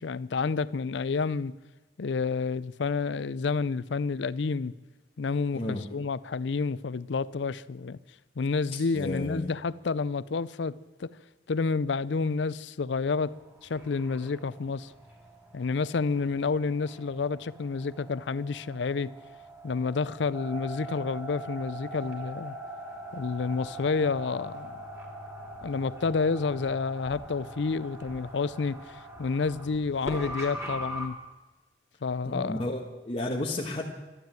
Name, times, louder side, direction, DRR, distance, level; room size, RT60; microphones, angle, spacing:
voice 1, 0.0-1.6 2.0-4.7 5.2-8.0 8.4-11.1 11.5-13.4 13.6-14.9 15.5-19.1 19.6-22.5 23.1-24.8 25.6-31.2 32.0-32.6, left 4 dB, 70° left, 0.5 m, -29 dB
voice 2, 5.5-5.9 8.7-9.5 32.2-33.9, left 1 dB, 35° left, 1.5 m, -32 dB
sound 1, 13.1-31.1, right 1 dB, 15° right, 3.2 m, -42 dB
12.5 x 12.5 x 9.0 m
head